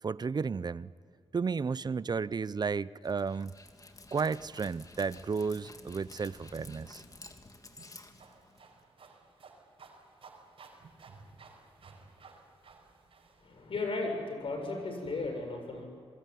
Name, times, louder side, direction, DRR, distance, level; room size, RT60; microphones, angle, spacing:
voice 1, 0.0-0.9 1.3-3.5 4.1-7.0, right 5 dB, 45° right, 18 dB, 0.7 m, -33 dB
Dog, 3.0-8.8, left 2 dB, 35° left, 2.6 m, -52 dB
sound 1, 6.6-13.8, right 4 dB, 70° right, 4.9 m, -55 dB
voice 2, 13.4-15.8, left 3 dB, 70° left, 3 dB, 7.3 m, -35 dB
27.0 x 21.5 x 9.4 m, 2.3 s
cardioid pair, 65°, 10 cm